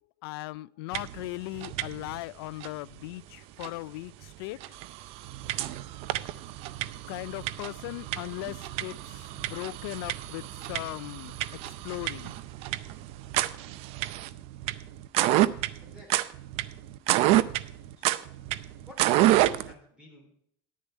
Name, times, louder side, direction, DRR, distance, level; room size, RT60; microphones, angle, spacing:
voice 1, 0.2-4.1 4.4-4.6 7.1-8.9 9.4-10.4 10.7-11.3 11.8-12.3, left 20 dB, 75° left, 0.4 m, -37 dB
sound 1, 0.9-1.3 1.5-2.2 2.6-2.7 3.6-3.7 4.2-4.3 4.6-19.7, right 15 dB, 55° right, 0.5 m, -29 dB
voice 2, 15.8-16.4 17.9-18.4 18.9-20.4, left 1 dB, 5° right, 3.3 m, -53 dB
10.5 x 9.5 x 4.4 m
supercardioid pair, 130°, 13 cm